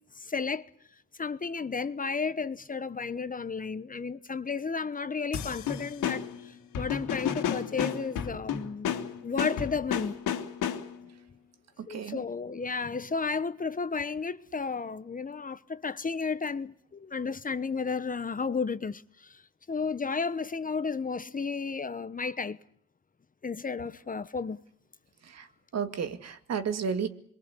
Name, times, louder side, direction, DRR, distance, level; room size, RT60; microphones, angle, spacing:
voice 1, 0.1-0.6 1.2-8.9 9.2-10.2 11.9-19.4 19.7-22.6 23.4-24.6, left 5 dB, 25° left, 1.1 m, -33 dB
sound 1, 5.3-11.1, left 8 dB, 85° left, 3.0 m, -32 dB
voice 2, 11.8-12.2 25.2-25.5 25.7-27.1, right 7 dB, 60° right, 2.4 m, -32 dB
27.0 x 23.0 x 8.4 m
cardioid pair, 90°, 30 cm